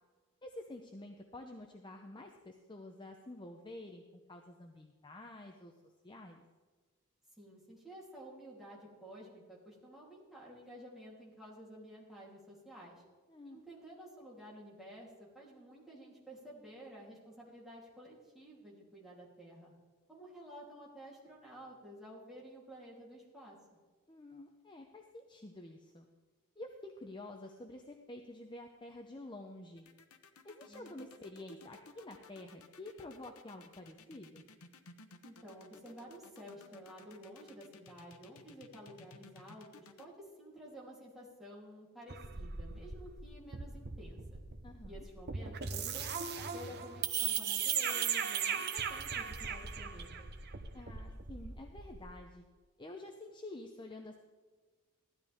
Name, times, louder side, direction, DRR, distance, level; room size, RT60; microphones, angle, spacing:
voice 1, 0.4-4.0 4.3-5.7 6.0-6.4 13.3-13.6 24.1-26.1 26.6-29.9 30.4-34.5 44.6-45.0 50.7-52.5 52.8-54.2, left 2 dB, 20° left, 3 dB, 0.8 m, -49 dB
voice 2, 7.4-13.0 13.4-19.7 20.1-23.6 30.7-31.1 35.2-44.2 44.9-50.3, equal, ahead, -6 dB, 3.4 m, -52 dB
sound 1, 29.8-40.0, left 3 dB, 85° left, 0.9 m, -57 dB
sound 2, 42.1-52.1, right 7 dB, 50° right, 0.9 m, -38 dB
15.5 x 12.5 x 3.6 m, 1.4 s
head